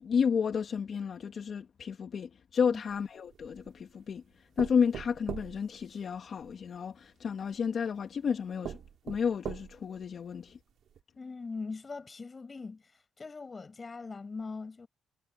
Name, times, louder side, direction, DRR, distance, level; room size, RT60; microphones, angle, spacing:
voice 1, 0.0-8.8 9.0-10.6, left 6 dB, 50° left, 1.7 m, -31 dB
sound 1, 2.9-3.8 4.6-6.5 7.5-7.6 8.2-8.3 8.6-10.0 10.5-10.6 10.9-11.0, right 9 dB, 65° right, 2.3 m, -42 dB
voice 2, 11.2-12.8 13.2-14.9, left 4 dB, 30° left, 6.0 m, -41 dB
cardioid pair, 90°, 0 cm